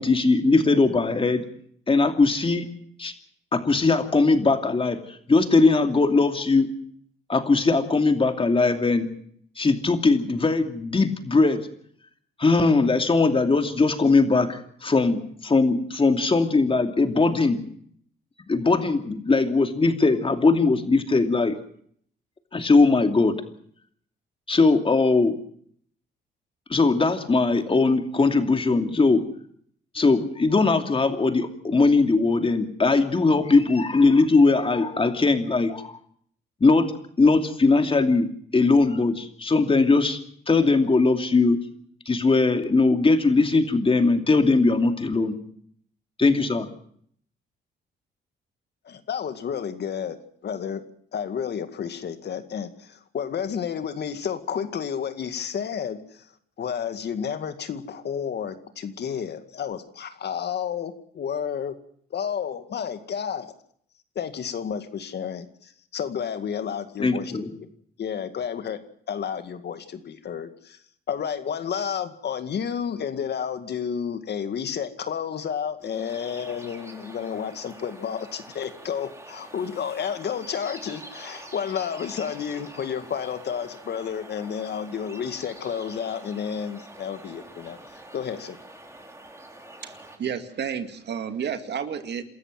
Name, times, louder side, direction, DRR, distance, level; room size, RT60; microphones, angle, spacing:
voice 1, 0.0-1.4 1.9-2.7 3.0-3.1 3.5-6.7 7.3-9.1 9.6-11.6 12.4-17.6 18.5-21.5 22.5-23.4 24.5-25.4 26.7-29.2 29.9-35.9 36.6-36.9 37.2-41.6 42.1-45.3 46.2-46.7 67.0-67.6, left 3 dB, 25° left, 6 dB, 2.8 m, -20 dB
voice 2, 48.8-50.2 50.4-50.8 51.1-56.3 56.6-61.8 62.1-63.5 64.2-67.3 68.0-68.8 69.1-70.8 71.1-88.6, left 7 dB, 60° left, 9 dB, 2.1 m, -31 dB
sound 1, 75.8-90.2, right 1 dB, 15° right, 4.1 m, -45 dB
voice 3, 89.8-92.2, right 7 dB, 60° right, 8 dB, 2.2 m, -31 dB
27.5 x 13.5 x 7.7 m, 0.64 s
cardioid pair, 90°, 20 cm